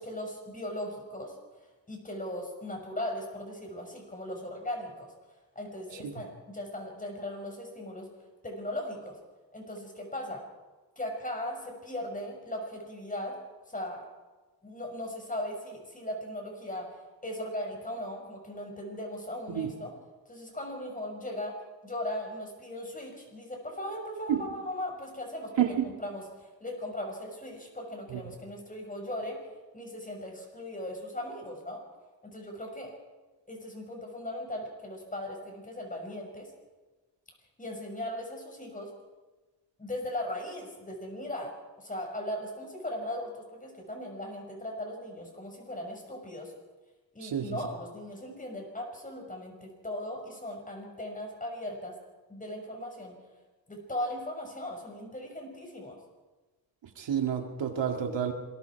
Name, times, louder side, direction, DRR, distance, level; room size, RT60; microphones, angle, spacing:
voice 1, 0.0-1.3 1.9-5.1 5.6-8.1 8.4-9.2 9.5-10.4 11.0-13.4 13.7-14.0 14.6-16.9 17.2-19.9 20.3-21.6 21.8-25.7 26.0-29.4 29.7-31.8 32.2-32.9 33.5-36.5 37.6-38.9 39.8-41.5 41.8-46.5 47.1-51.9 52.3-53.1 53.7-56.0, left 1 dB, 20° left, 2 dB, 5.9 m, -38 dB
voice 2, 25.6-25.9 28.1-28.2 47.2-47.6 57.0-58.3, right 9 dB, 85° right, 4 dB, 2.4 m, -29 dB
26.5 x 21.5 x 4.8 m, 1.2 s
wide cardioid pair, 120°, 43 cm